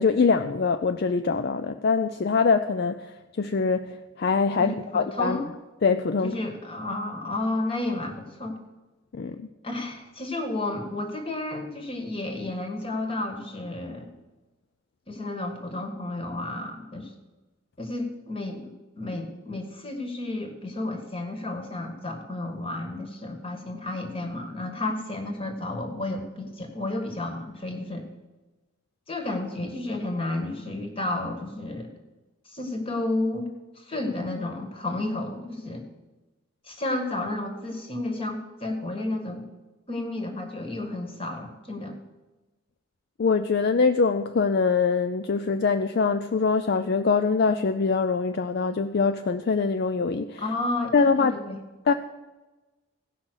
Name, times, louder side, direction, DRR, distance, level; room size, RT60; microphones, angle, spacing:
voice 1, 0.0-3.0 3.4-5.4 5.8-6.4 9.1-9.5 43.2-50.4 50.9-51.3 51.9-52.0, left 4 dB, 50° left, 9 dB, 0.4 m, -23 dB
voice 2, 4.6-5.5 6.2-8.6 9.6-14.1 15.1-17.1 17.8-18.6 19.0-28.0 29.1-31.9 32.4-33.5 33.7-35.8 36.6-39.4 39.9-42.0 50.4-51.6, left 2 dB, 25° left, 4 dB, 1.6 m, -32 dB
16.5 x 5.8 x 6.2 m, 1.1 s
head